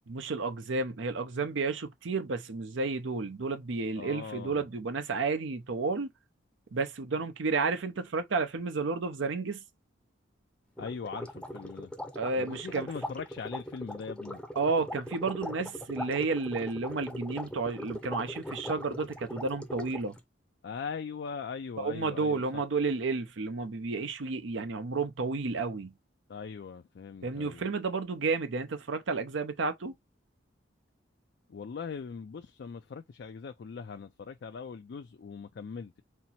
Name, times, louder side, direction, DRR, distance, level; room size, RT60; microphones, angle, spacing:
voice 1, 0.1-6.1 6.7-9.6 12.2-12.9 14.6-20.2 21.8-25.9 27.2-29.9, right 4 dB, 80° right, 0.6 m, -31 dB
voice 2, 4.0-4.7 10.8-11.9 12.3-14.4 20.6-22.6 26.3-27.7 31.5-36.0, left 5 dB, 60° left, 0.4 m, -40 dB
sound 1, 10.8-20.2, left 1 dB, 5° left, 0.6 m, -40 dB
4.4 x 2.0 x 4.1 m
head